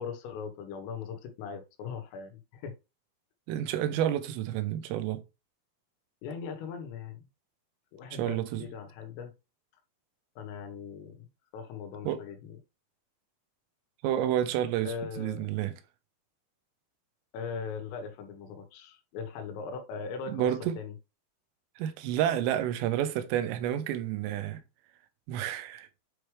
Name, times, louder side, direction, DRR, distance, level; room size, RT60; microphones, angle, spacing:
voice 1, 0.0-2.8 6.2-7.2 7.9-9.3 10.4-11.3 11.5-12.6 14.9-15.5 17.3-20.5 20.8-20.9, left 6 dB, 85° left, 3.9 m, -39 dB
voice 2, 3.5-5.2 8.2-8.7 12.1-12.2 14.0-15.7 20.3-20.8 21.8-24.6 25.3-25.9, right 11 dB, 85° right, 3.5 m, -30 dB
8.8 x 4.8 x 3.2 m
omnidirectional pair, 5.8 m